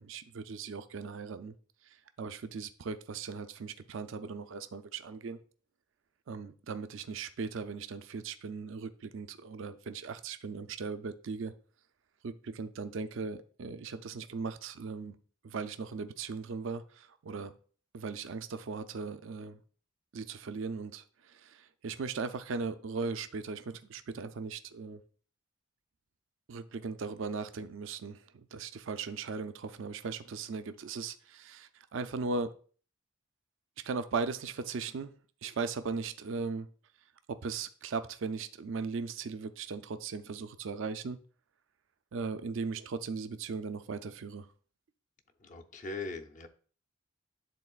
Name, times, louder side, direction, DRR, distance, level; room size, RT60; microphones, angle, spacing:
voice 1, 0.0-1.5 1.8-5.4 6.3-11.5 12.2-15.2 15.4-17.5 17.9-19.6 20.1-25.0 26.5-32.5 33.8-35.1 35.4-36.7 37.3-41.2 42.1-44.5, right 4 dB, 65° right, 0.4 m, -38 dB
voice 2, 45.4-46.5, left 3 dB, 40° left, 0.6 m, -40 dB
10.5 x 3.8 x 2.4 m
head